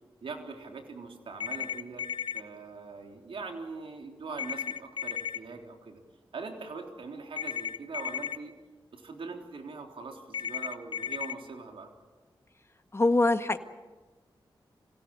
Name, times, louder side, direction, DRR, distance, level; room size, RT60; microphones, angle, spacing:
voice 1, 0.2-2.1 2.3-6.0 6.3-8.5 8.9-11.9, right 4 dB, 80° right, 3 dB, 3.7 m, -42 dB
sound 1, 1.4-2.4 4.4-5.4 7.4-8.4 10.3-11.3, left 8 dB, 60° left, 1.2 m, -34 dB
voice 2, 12.9-13.6, left 2 dB, 30° left, 8 dB, 1.7 m, -23 dB
25.5 x 17.0 x 9.1 m, 1.3 s
cardioid pair, 55°, 9 cm